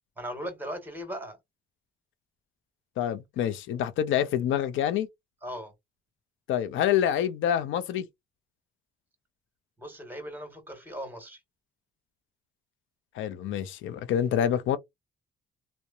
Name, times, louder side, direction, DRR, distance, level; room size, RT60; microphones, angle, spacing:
voice 1, 0.2-1.4 5.4-5.7 9.8-11.4, equal, 10° right, 1.2 m, -38 dB
voice 2, 3.0-5.1 6.5-8.1 13.2-14.8, left 10 dB, 80° left, 0.5 m, -27 dB
2.7 x 2.1 x 2.3 m
cardioid pair, 90°, 20 cm